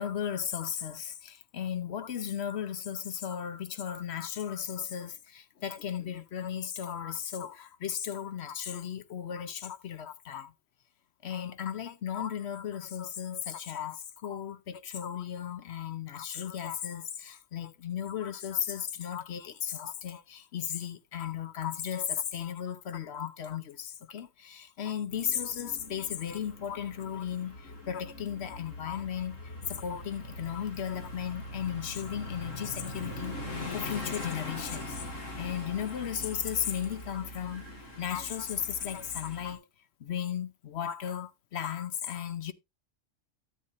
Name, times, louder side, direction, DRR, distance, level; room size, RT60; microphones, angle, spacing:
voice 1, 0.0-10.5 11.2-29.4 29.7-35.0 35.4-37.7 38.0-39.6 40.0-42.5, left 9 dB, 60° left, 0.9 m, -35 dB
sound 1, 25.1-39.5, left 1 dB, 80° left, 2.3 m, -42 dB
12.5 x 8.0 x 2.5 m
omnidirectional pair, 1.3 m